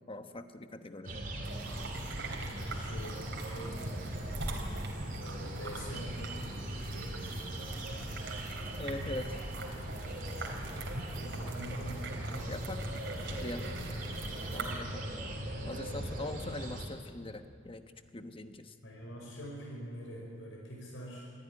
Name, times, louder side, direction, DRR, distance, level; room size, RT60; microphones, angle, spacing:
voice 1, 0.1-1.2 8.8-9.4 12.5-14.1 14.5-15.3 15.6-17.8 18.1-18.7, left 2 dB, 30° left, 8 dB, 1.1 m, -42 dB
sound 1, 1.0-16.9, right 1 dB, 45° right, 3.4 m, -40 dB
sound 2, 1.4-14.7, right 2 dB, 65° right, 3.5 m, -43 dB
voice 2, 2.4-4.0 5.1-7.4 11.1-12.1 12.9-13.9 18.8-21.3, equal, 85° left, -2 dB, 5.3 m, -45 dB
24.0 x 15.0 x 10.0 m, 2.3 s
head